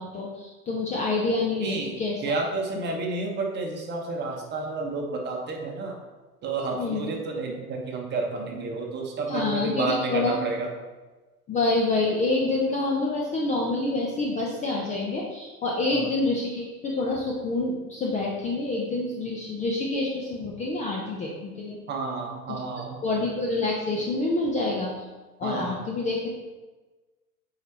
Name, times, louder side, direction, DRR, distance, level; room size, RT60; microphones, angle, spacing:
voice 1, 0.0-2.4 6.8-7.1 9.3-10.4 11.5-21.8 22.5-22.6 23.0-24.9 25.4-26.3, left 2 dB, 15° left, -2 dB, 0.7 m, -27 dB
voice 2, 1.6-1.9 2.2-5.9 6.4-10.7 15.9-16.0 21.9-23.0 25.4-25.8, right 3 dB, 20° right, 0 dB, 1.2 m, -30 dB
7.9 x 4.8 x 2.9 m, 1.2 s
figure-of-eight pair, 95°, 46 cm